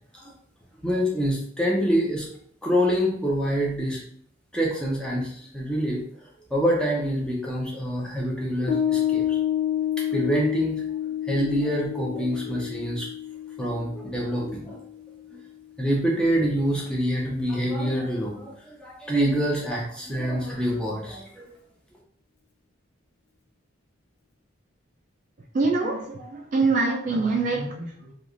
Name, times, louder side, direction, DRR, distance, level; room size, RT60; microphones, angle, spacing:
voice 1, 0.8-2.3 2.6-4.0 4.5-9.4 10.1-10.8 11.3-13.1 13.6-14.8 15.8-21.5, equal, 5° left, -3 dB, 0.6 m, -26 dB
Piano, 8.7-15.4, left 11 dB, 60° left, 0.6 m, -29 dB
voice 2, 25.5-28.1, right 3 dB, 40° right, 1 dB, 0.3 m, -25 dB
3.1 x 2.4 x 2.5 m, 0.65 s
head